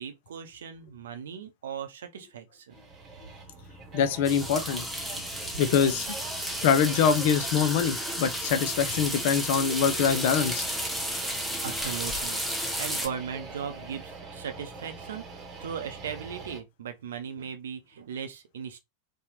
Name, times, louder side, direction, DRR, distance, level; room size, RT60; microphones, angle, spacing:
voice 1, 0.0-2.8 5.8-6.0 11.6-18.8, right 7 dB, 60° right, 0.6 m, -38 dB
sound 1, 2.7-16.6, right 3 dB, 25° right, 1.0 m, -44 dB
voice 2, 3.9-4.8 5.6-6.2 6.6-10.6, left 7 dB, 50° left, 0.5 m, -24 dB
sound 2, 4.2-13.1, equal, ahead, 0.7 m, -32 dB
4.0 x 2.3 x 3.0 m
figure-of-eight pair, 90°, 0 cm